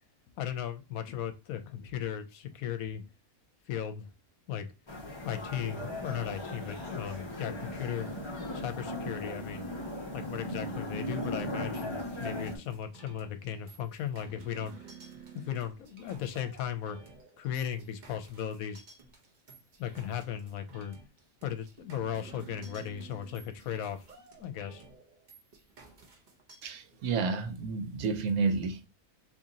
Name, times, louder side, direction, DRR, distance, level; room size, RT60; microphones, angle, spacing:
voice 1, 0.4-3.1 3.7-4.1 4.5-4.7 5.2-8.1 8.5-9.7 10.1-14.7 15.5-17.0 17.4-18.8 19.8-20.9 21.4-24.0 24.4-24.8, left 9 dB, 80° left, 1.0 m, -36 dB
sound 1, 4.9-12.6, left 1 dB, 25° left, 0.7 m, -38 dB
sound 2, 11.2-26.7, right 5 dB, 45° right, 0.7 m, -53 dB
voice 2, 26.6-28.9, right 4 dB, 80° right, 1.1 m, -30 dB
2.9 x 2.8 x 3.7 m
omnidirectional pair, 1.5 m